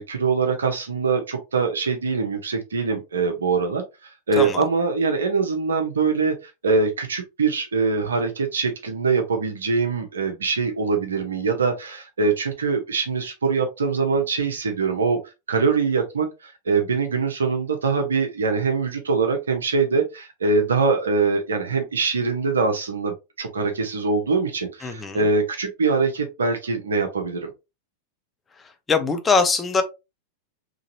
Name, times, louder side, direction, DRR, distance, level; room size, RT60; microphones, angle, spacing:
voice 1, 0.0-3.8 4.3-15.2 15.5-27.5, right 4 dB, 70° right, 0.8 m, -23 dB
voice 2, 24.8-25.2 28.9-29.8, left 4 dB, 15° left, 0.7 m, -21 dB
3.9 x 3.0 x 2.7 m
figure-of-eight pair, 90°, 0 cm